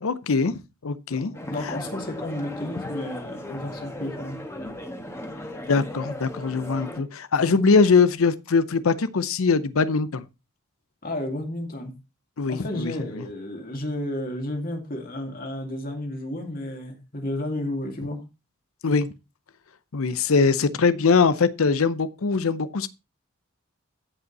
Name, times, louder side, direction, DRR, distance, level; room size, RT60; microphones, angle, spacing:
voice 1, 0.0-1.3 1.6-1.7 5.7-10.2 12.4-12.9 18.8-19.1 19.9-22.9, left 4 dB, 75° left, 0.6 m, -22 dB
voice 2, 1.1-4.4 6.8-7.0 7.4-7.6 11.0-11.9 12.5-18.2, left 1 dB, 40° left, 2.4 m, -32 dB
sound 1, 1.3-7.0, left 1 dB, 10° left, 1.5 m, -36 dB
14.5 x 5.4 x 4.0 m
head